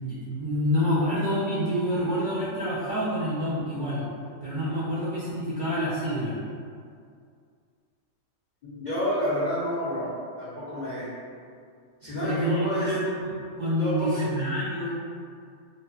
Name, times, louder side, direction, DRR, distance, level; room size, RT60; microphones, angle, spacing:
voice 1, 0.0-4.0 4.4-6.4 12.0-13.3 13.6-14.9, equal, 65° right, -10 dB, 0.5 m, -27 dB
voice 2, 8.6-10.1 10.4-11.1 12.0-12.9 13.8-14.3, equal, 70° left, -10 dB, 0.4 m, -29 dB
2.5 x 2.4 x 2.3 m, 2.2 s
omnidirectional pair, 1.4 m